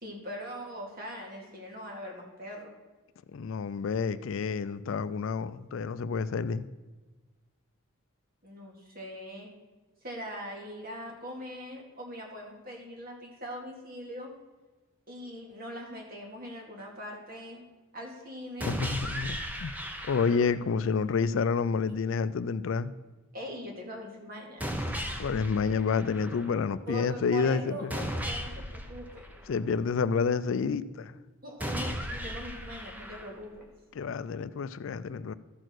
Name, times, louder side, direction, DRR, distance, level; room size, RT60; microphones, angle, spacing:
voice 1, 0.0-2.7 8.4-9.5 10.0-14.3 15.1-17.6 17.9-18.8 23.3-25.0 26.9-29.3 31.4-33.5, equal, 45° right, 0 dB, 2.1 m, -41 dB
voice 2, 3.3-6.7 18.6-19.7 20.1-22.9 25.2-27.9 29.5-31.2 34.0-35.3, left 5 dB, 65° left, 15 dB, 0.4 m, -29 dB
sound 1, 18.6-20.6 24.6-26.6 27.9-29.9 31.6-33.6, equal, 5° right, 0.7 m, -36 dB
13.5 x 4.5 x 6.2 m, 1.2 s
head